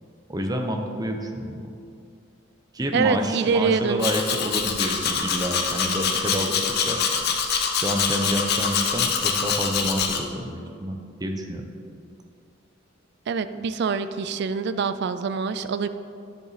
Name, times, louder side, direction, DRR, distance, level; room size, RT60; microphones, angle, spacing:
voice 1, 0.3-1.7 2.7-7.0 7.7-11.6, equal, 20° right, 3 dB, 0.8 m, -28 dB
voice 2, 2.9-4.1 13.3-15.9, right 5 dB, 60° right, 11 dB, 0.4 m, -25 dB
Domestic sounds home sounds, 4.0-10.2, left 6 dB, 55° left, 0.8 m, -25 dB
10.0 x 7.0 x 4.1 m, 2.5 s
head